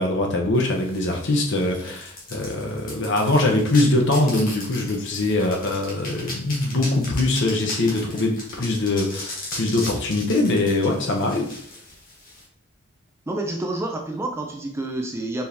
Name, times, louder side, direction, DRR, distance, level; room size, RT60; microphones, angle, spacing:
voice 1, 0.0-11.5, left 2 dB, 55° left, 1 dB, 0.8 m, -22 dB
sound 1, 0.5-12.4, left 2 dB, 40° left, 1.5 m, -37 dB
voice 2, 13.3-15.5, right 2 dB, 10° right, 1 dB, 0.4 m, -29 dB
4.4 x 2.9 x 3.4 m, 0.66 s
head